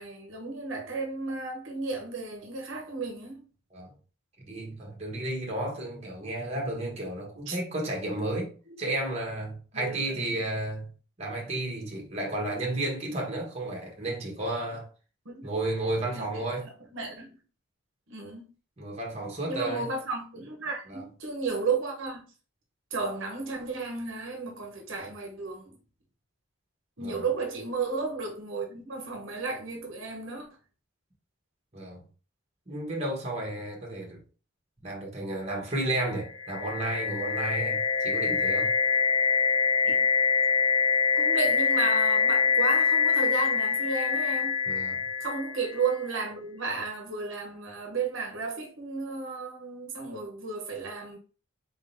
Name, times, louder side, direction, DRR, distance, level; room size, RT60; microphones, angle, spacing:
voice 1, 0.0-3.5 7.5-7.6 8.7-8.8 9.7-10.3 15.2-15.5 16.1-16.4 16.9-17.4 18.1-18.4 19.5-22.2 22.9-25.8 27.0-30.5 39.9-40.0 41.2-44.6 45.2-51.2, right 4 dB, 70° right, 1.1 m, -33 dB
voice 2, 4.5-8.5 8.8-10.9 11.2-14.9 15.4-16.7 18.8-19.9 20.9-21.0 27.0-27.2 31.7-32.0 32.7-34.2 34.8-38.7 44.7-45.0, right 2 dB, 30° right, 1.4 m, -32 dB
sound 1, 36.1-46.0, left 5 dB, 80° left, 1.0 m, -25 dB
4.3 x 3.7 x 2.7 m
head